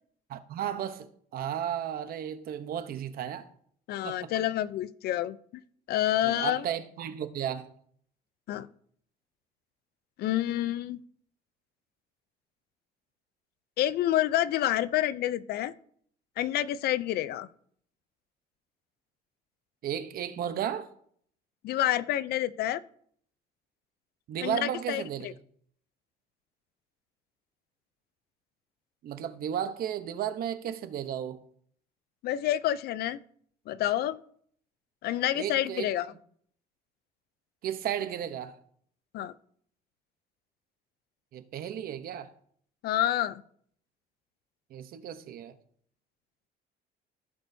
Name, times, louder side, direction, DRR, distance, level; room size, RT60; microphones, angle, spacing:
voice 1, 0.3-1.1 1.3-3.4 4.0-4.3 6.2-7.7 19.8-20.9 24.3-25.4 29.0-31.4 35.3-35.9 37.6-38.6 41.3-42.3 44.7-45.5, right 9 dB, 60° right, 0.9 m, -34 dB
voice 2, 3.9-5.4 5.9-6.7 8.5-8.7 10.2-11.0 13.8-15.7 16.4-17.5 21.6-22.8 24.4-25.3 32.2-33.2 33.7-34.2 35.0-36.1 39.1-39.3 42.8-43.4, left 13 dB, 70° left, 0.5 m, -28 dB
16.0 x 6.2 x 2.7 m
cardioid pair, 110°, 17 cm